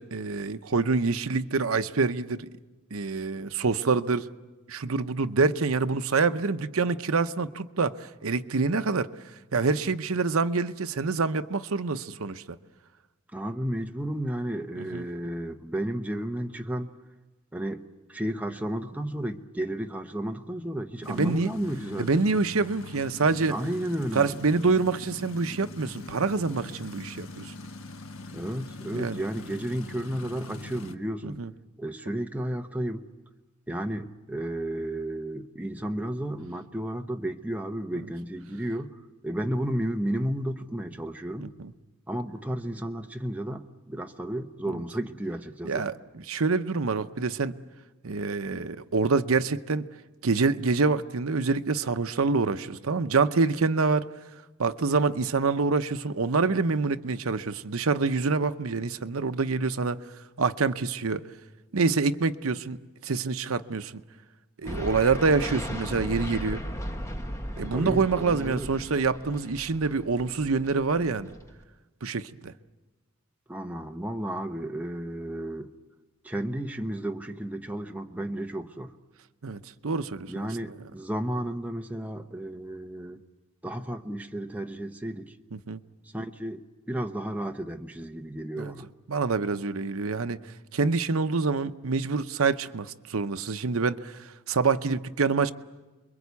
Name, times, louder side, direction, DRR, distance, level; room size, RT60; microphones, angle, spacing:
voice 1, 0.0-2.5 2.9-4.3 4.7-9.1 9.5-12.6 14.8-15.0 21.1-21.5 22.0-23.5 24.1-27.5 28.9-29.2 31.2-31.5 37.9-38.1 41.4-41.7 44.7-44.8 45.6-47.5 48.0-49.9 50.2-54.1 54.6-60.0 60.4-61.2 61.7-64.0 64.6-66.6 67.6-71.3 72.0-72.5 79.4-80.7 85.5-85.8 88.6-88.7 89.1-95.5, right 4 dB, 75° right, 0.8 m, -26 dB
voice 2, 13.3-16.9 17.5-17.8 18.1-22.3 23.5-24.4 28.3-31.4 31.8-33.0 33.7-41.5 42.1-45.9 67.7-68.7 73.5-75.7 76.2-78.9 80.3-83.2 83.6-85.3 86.1-88.9, right 1 dB, 5° right, 0.9 m, -33 dB
sound 1, 21.0-30.9, left 2 dB, 75° left, 1.2 m, -43 dB
sound 2, 64.6-71.6, equal, 15° left, 1.3 m, -37 dB
29.0 x 22.5 x 8.3 m
head